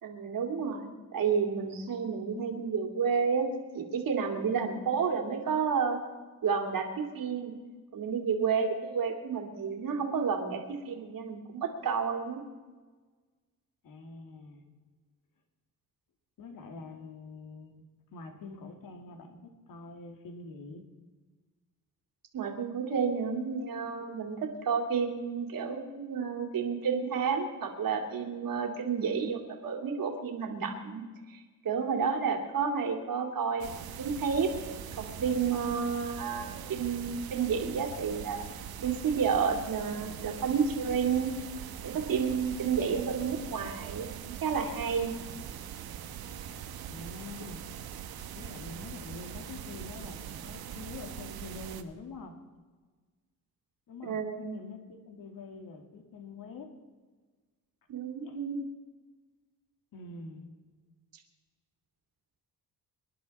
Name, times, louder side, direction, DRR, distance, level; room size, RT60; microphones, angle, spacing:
voice 1, 0.0-3.5 3.7-6.0 6.4-7.6 7.9-12.4 22.3-34.5 35.0-38.5 38.8-41.3 41.8-44.1 44.4-45.1 54.0-54.6 57.9-58.7, right 6 dB, 70° right, 2 dB, 2.6 m, -31 dB
voice 2, 13.8-14.6 16.4-17.8 18.1-20.8 46.8-47.6 48.3-52.3 53.9-56.7 58.2-58.4 59.9-60.5, left 3 dB, 65° left, 4 dB, 2.4 m, -45 dB
sound 1, 33.6-51.8, right 9 dB, 85° right, 1.2 m, -42 dB
25.0 x 11.0 x 4.2 m, 1.4 s
cardioid pair, 110°, 36 cm